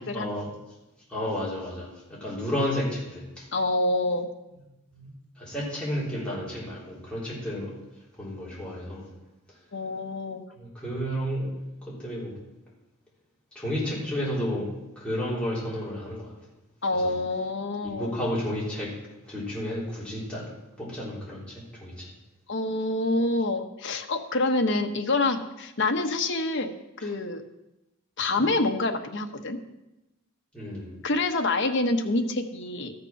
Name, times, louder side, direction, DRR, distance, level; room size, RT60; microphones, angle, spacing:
voice 1, 0.1-0.5 1.1-3.4 4.9-5.1 5.4-7.7 8.2-9.0 10.6-11.6 11.8-12.3 13.6-14.7 15.0-16.3 17.0-17.1 18.0-18.9 19.3-20.5 20.8-22.1 30.5-30.9, equal, 5° left, -7 dB, 3.6 m, -31 dB
voice 2, 3.5-4.3 9.7-10.4 16.8-18.1 22.5-26.7 27.0-27.4 28.2-29.6 31.0-32.9, left 2 dB, 55° left, 5 dB, 1.0 m, -26 dB
13.0 x 6.7 x 5.9 m, 0.97 s
head